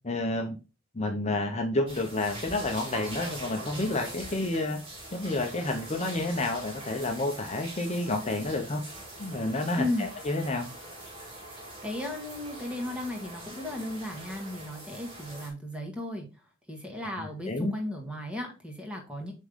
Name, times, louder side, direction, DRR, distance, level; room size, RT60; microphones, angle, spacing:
voice 1, 0.0-0.6 0.9-4.8 5.1-8.8 9.2-10.7 17.0-17.7, left 2 dB, 35° left, 3 dB, 0.8 m, -30 dB
sound 1, 1.9-15.5, right 1 dB, 25° right, 2.5 m, -43 dB
voice 2, 9.7-10.1 11.8-16.2 16.7-19.3, left 1 dB, 5° right, 1 dB, 1.6 m, -35 dB
7.7 x 3.7 x 3.6 m, 0.30 s
head